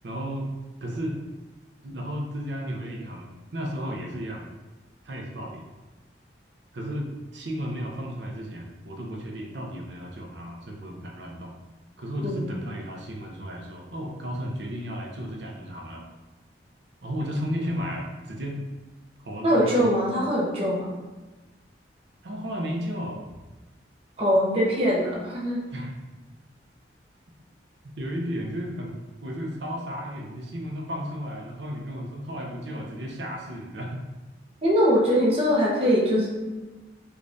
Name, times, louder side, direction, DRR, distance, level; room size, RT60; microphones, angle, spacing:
voice 1, 0.0-0.5 0.8-1.2 1.8-4.5 5.0-5.7 6.7-11.5 12.0-16.1 17.0-18.6 19.2-19.9 22.2-23.2 25.7-25.9 27.8-34.2, equal, 70° right, 0 dB, 0.6 m, -34 dB
voice 2, 19.4-20.9 24.2-25.6 34.6-36.3, equal, 30° right, -6 dB, 0.7 m, -22 dB
5.0 x 2.4 x 2.6 m, 1.2 s
head